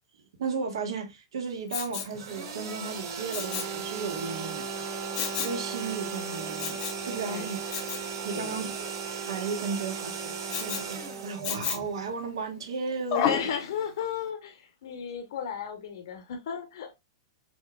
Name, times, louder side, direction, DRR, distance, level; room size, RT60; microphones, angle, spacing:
voice 1, 0.4-4.6 5.4-7.6 8.2-8.9 9.2-13.5, right 5 dB, 80° right, 1.4 m, -34 dB
Respiratory sounds, 1.7-2.2 3.3-3.8 5.1-5.6 6.6-7.0 7.7-8.1 10.5-10.9 11.4-12.0 13.1-13.5 14.0-14.1, left 9 dB, 30° left, 0.7 m, -31 dB
sound 1, 2.1-12.1, right 6 dB, 60° right, 1.5 m, -37 dB
Wind instrument woodwind instrument, 3.3-11.5, right 3 dB, 35° right, 1.2 m, -41 dB
voice 2, 8.3-8.7 13.1-17.0, left 7 dB, 65° left, 0.8 m, -34 dB
4.4 x 3.6 x 2.3 m
supercardioid pair, 165°, 3 cm